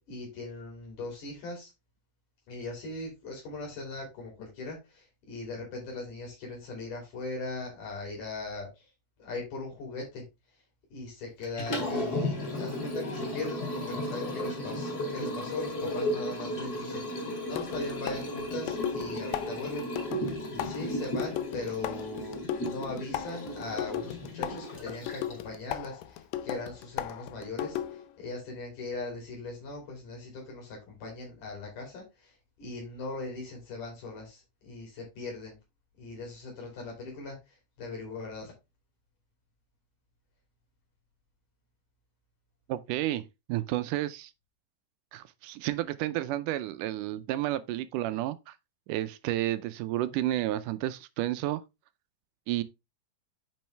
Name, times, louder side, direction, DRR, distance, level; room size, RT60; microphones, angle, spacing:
voice 1, 0.1-1.7 2.5-8.9 9.2-10.2 10.9-20.2 20.5-35.6 36.0-38.5, left 3 dB, 70° left, 4.3 m, -40 dB
Liquid, 11.4-25.5, equal, 30° left, 2.5 m, -34 dB
sound 1, 15.8-16.0 17.6-28.2, left 11 dB, 85° left, 2.4 m, -37 dB
voice 2, 42.7-44.3 45.1-48.6 48.9-51.6 52.5-52.6, right 14 dB, 80° right, 2.0 m, -31 dB
9.2 x 5.4 x 3.3 m
omnidirectional pair, 3.9 m